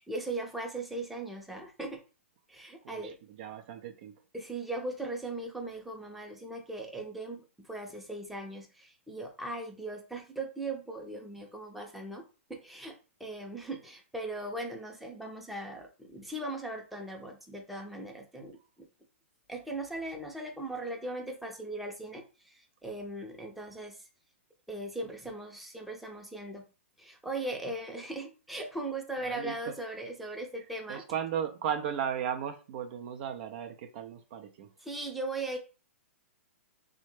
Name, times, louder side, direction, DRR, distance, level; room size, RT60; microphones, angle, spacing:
voice 1, 0.0-2.0 2.5-3.2 4.3-12.2 12.5-18.9 19.5-24.0 24.7-26.6 27.0-31.0 34.8-35.6, right 2 dB, ahead, 0.6 m, -39 dB
voice 2, 2.8-4.1 29.2-29.7 30.9-34.7, right 8 dB, 45° right, 0.4 m, -36 dB
3.3 x 2.1 x 3.1 m
hypercardioid pair, 115°, 7 cm